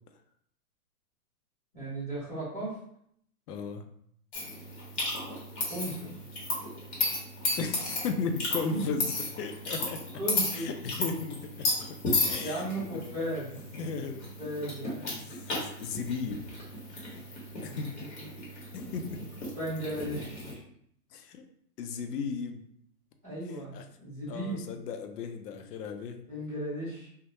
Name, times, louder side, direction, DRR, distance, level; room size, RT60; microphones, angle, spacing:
voice 1, 1.7-2.7 5.7-6.1 8.7-8.8 10.2-10.7 12.4-13.5 14.2-15.1 17.7-18.3 19.5-20.6 23.2-24.6 26.3-27.1, right 1 dB, 5° left, -11 dB, 0.8 m, -36 dB
voice 2, 3.5-3.8 7.6-10.0 10.5-12.0 12.3-13.3 13.7-14.2 14.9-16.5 16.9-17.2 17.6-17.9 18.7-19.2 21.1-21.4 21.8-22.6 23.7-23.8 24.3-26.2, left 5 dB, 80° left, 6 dB, 0.6 m, -36 dB
sound 1, 4.3-20.5, left 2 dB, 45° left, 1.1 m, -34 dB
2.3 x 2.1 x 2.9 m, 0.70 s
hypercardioid pair, 155°, 47 cm